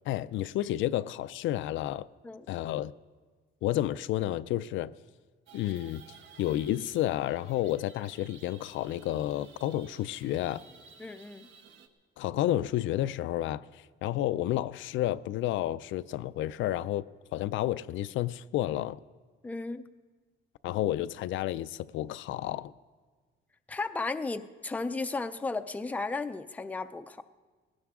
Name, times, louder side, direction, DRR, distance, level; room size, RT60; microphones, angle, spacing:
voice 1, 0.1-2.1 2.5-2.9 3.6-4.9 5.5-6.0 6.4-10.6 12.2-13.6 14.0-17.0 17.3-19.0 20.6-22.7, left 13 dB, 70° left, 0.4 m, -31 dB
sound 1, 5.5-11.9, right 6 dB, 70° right, 1.2 m, -55 dB
voice 2, 11.0-11.5 19.4-19.9 23.7-27.2, left 3 dB, 5° left, 0.4 m, -34 dB
19.0 x 17.0 x 3.6 m
cardioid pair, 135°, 21 cm